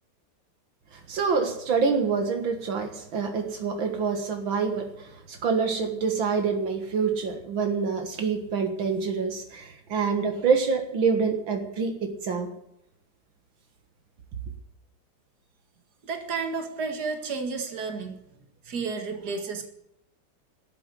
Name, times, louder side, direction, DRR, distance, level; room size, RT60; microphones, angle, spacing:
voice 1, 1.1-4.9 5.3-12.5, right 5 dB, 80° right, 5 dB, 2.4 m, -26 dB
voice 2, 16.0-18.2 18.7-19.7, right 4 dB, 55° right, 5 dB, 2.4 m, -31 dB
13.0 x 7.9 x 9.6 m, 0.81 s
omnidirectional pair, 2.1 m